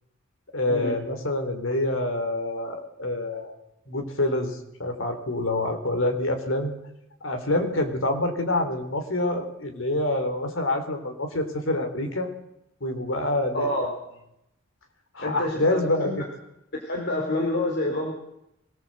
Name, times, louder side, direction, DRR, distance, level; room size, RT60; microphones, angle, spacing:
voice 1, 0.5-3.6 3.9-6.7 7.2-12.3 12.8-13.9 15.1-16.1, left 1 dB, 75° left, 5 dB, 3.9 m, -26 dB
voice 2, 13.5-13.9 15.2-16.2 16.9-18.1, left 1 dB, 55° left, 0 dB, 3.9 m, -27 dB
23.0 x 18.5 x 7.8 m, 0.82 s
head